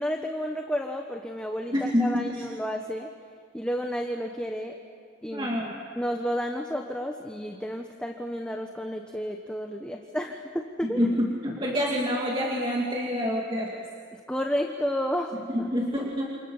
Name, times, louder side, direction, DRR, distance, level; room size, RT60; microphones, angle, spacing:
voice 1, 0.0-3.1 3.5-4.8 5.2-11.1 14.3-15.7, equal, 5° left, 2 dB, 1.2 m, -31 dB
voice 2, 1.7-2.5 5.3-5.8 10.8-13.8 15.5-16.3, equal, 25° right, -2 dB, 2.5 m, -27 dB
28.0 x 28.0 x 7.3 m, 2.1 s
head